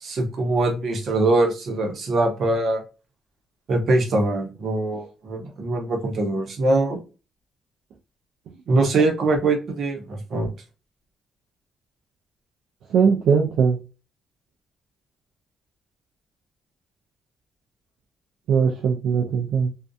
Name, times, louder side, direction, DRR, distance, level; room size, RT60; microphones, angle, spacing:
voice 1, 0.0-2.8 3.7-7.0 8.7-10.5, right 2 dB, 60° right, 0.9 m, -22 dB
voice 2, 12.9-13.8 18.5-19.7, right 6 dB, 80° right, 0.4 m, -20 dB
2.5 x 2.2 x 2.3 m
cardioid pair, 90°, 0 cm